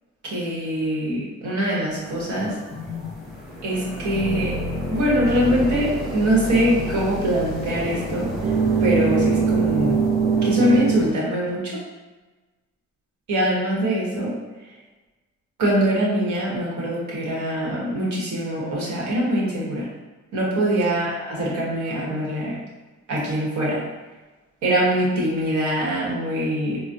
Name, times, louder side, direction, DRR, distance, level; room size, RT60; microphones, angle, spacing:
voice 1, 0.2-2.5 3.6-4.5 4.9-8.3 8.8-10.0 10.4-11.8 13.3-14.3 15.6-19.9 20.3-22.5 23.1-23.8 24.6-26.8, equal, 70° right, -5 dB, 1.2 m, -23 dB
sound 1, 1.9-11.1, left 1 dB, ahead, 1.0 m, -31 dB
sound 2, 8.4-11.1, right 6 dB, 35° right, 0.6 m, -21 dB
4.0 x 2.1 x 2.6 m, 1.2 s
cardioid pair, 90°, 30 cm